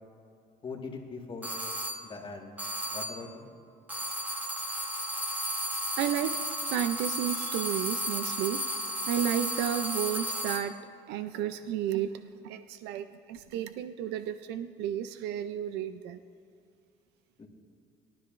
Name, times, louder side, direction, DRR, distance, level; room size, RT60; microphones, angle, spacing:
voice 1, 0.6-1.5 2.0-2.5 2.9-3.5 17.4-17.5, left 4 dB, 30° left, 0 dB, 1.7 m, -41 dB
sound 1, 1.4-2.1 2.6-3.3 3.9-10.8, equal, 10° right, 1.0 m, -34 dB
voice 2, 6.0-8.7 9.1-10.8 11.1-16.2, right 10 dB, 90° right, 10 dB, 0.4 m, -32 dB
18.5 x 12.0 x 2.5 m, 2.5 s
cardioid pair, 110°, 17 cm